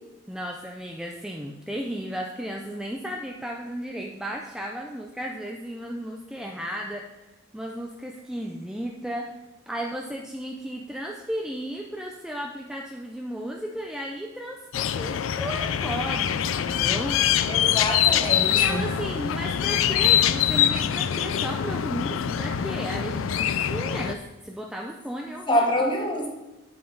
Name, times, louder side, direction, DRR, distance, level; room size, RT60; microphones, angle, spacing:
voice 1, 0.3-7.1 7.5-9.4 9.7-17.2 17.7-17.9 18.5-25.9, equal, 5° right, 0 dB, 0.4 m, -34 dB
sound 1, 14.7-24.2, left 9 dB, 85° left, 0.4 m, -24 dB
voice 2, 17.4-18.9 25.5-26.3, left 1 dB, 25° left, 2 dB, 1.2 m, -25 dB
7.8 x 7.5 x 3.9 m, 1.1 s
head